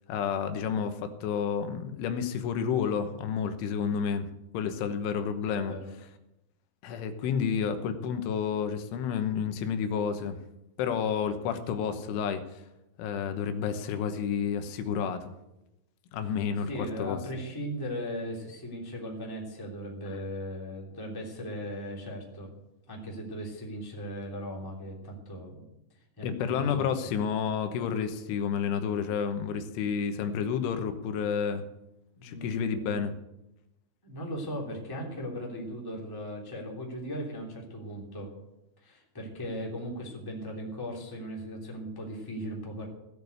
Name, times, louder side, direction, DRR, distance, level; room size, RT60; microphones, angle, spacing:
voice 1, 0.1-4.3 4.5-5.8 6.8-10.4 10.8-12.4 13.0-15.3 16.1-17.2 26.2-31.7 32.2-33.1, left 7 dB, 85° left, 8 dB, 3.5 m, -30 dB
voice 2, 5.4-5.9 16.7-22.5 22.9-25.6 26.2-26.9 32.1-32.9 34.0-38.3 38.8-42.8, equal, 5° left, -2 dB, 2.0 m, -38 dB
17.5 x 7.1 x 8.0 m, 0.90 s
omnidirectional pair, 5.4 m